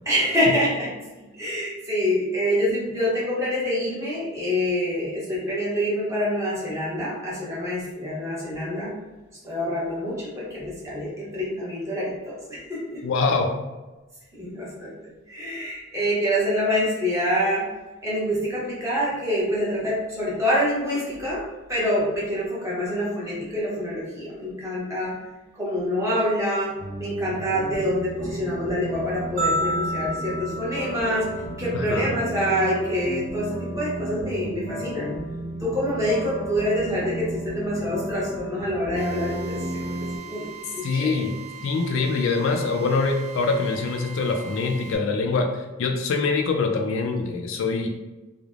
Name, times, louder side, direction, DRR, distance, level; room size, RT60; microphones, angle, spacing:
voice 1, 0.0-0.9 1.3-8.9 9.4-13.0 14.3-15.0 15.3-17.7 18.0-21.4 21.7-25.1 25.5-26.7 27.0-31.3 31.6-35.1 35.6-41.2, equal, 15° right, -7 dB, 0.8 m, -26 dB
voice 2, 13.0-13.5 31.7-32.1 40.8-41.3 41.6-47.9, left 4 dB, 65° left, 3 dB, 0.3 m, -24 dB
sound 1, 26.8-40.2, right 1 dB, 20° left, 0.7 m, -33 dB
sound 2, 29.4-31.7, equal, 40° right, 0.5 m, -29 dB
Drill, 39.0-45.0, right 7 dB, 90° right, 0.7 m, -41 dB
3.1 x 2.0 x 2.4 m, 1.2 s
head